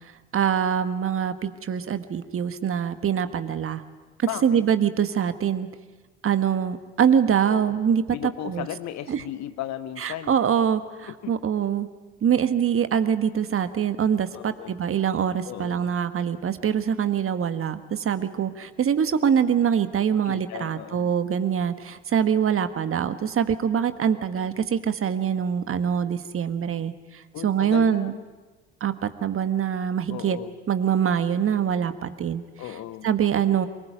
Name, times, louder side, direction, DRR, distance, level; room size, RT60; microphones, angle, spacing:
voice 1, 0.3-3.8 4.2-5.7 6.2-8.7 9.1-9.2 10.0-11.9 12.2-28.1 28.8-30.4 30.7-32.4 33.0-33.7, right 8 dB, 40° right, 11 dB, 1.5 m, -24 dB
voice 2, 4.3-4.7 7.5-7.7 8.1-10.4 11.1-11.3 14.3-14.7 15.4-15.9 20.2-21.1 27.3-28.2 30.1-30.5 32.6-33.1, left 12 dB, 55° left, 13 dB, 1.1 m, -36 dB
24.0 x 20.5 x 9.1 m, 1.3 s
figure-of-eight pair, 50°, 32 cm